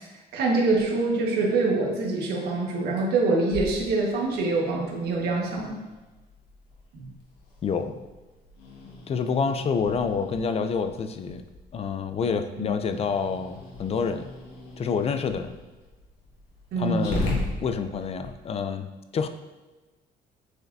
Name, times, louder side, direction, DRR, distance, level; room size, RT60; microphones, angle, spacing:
voice 1, 0.3-5.8 6.9-7.1 12.6-12.7 16.7-17.2, right 3 dB, 70° right, -1 dB, 1.6 m, -25 dB
Growling, 3.5-18.3, left 1 dB, 85° left, 1.6 m, -39 dB
voice 2, 7.6-8.0 9.1-11.4 11.7-14.3 14.8-15.6 16.8-19.3, left 5 dB, 35° left, 9 dB, 0.5 m, -28 dB
7.7 x 4.8 x 2.7 m, 1.2 s
cardioid pair, 110°, 17 cm